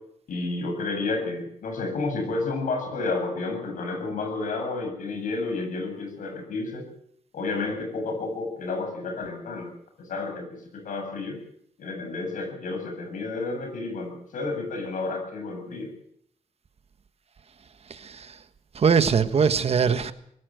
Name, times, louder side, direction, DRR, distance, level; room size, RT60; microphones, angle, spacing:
voice 1, 0.3-6.9 7.3-9.7 10.0-11.4 11.8-15.9, left 3 dB, 85° left, 7.9 m, -31 dB
voice 2, 17.9-18.4 18.7-20.1, right 6 dB, 50° right, 1.4 m, -22 dB
23.0 x 16.0 x 7.9 m
cardioid pair, 100°, 13 cm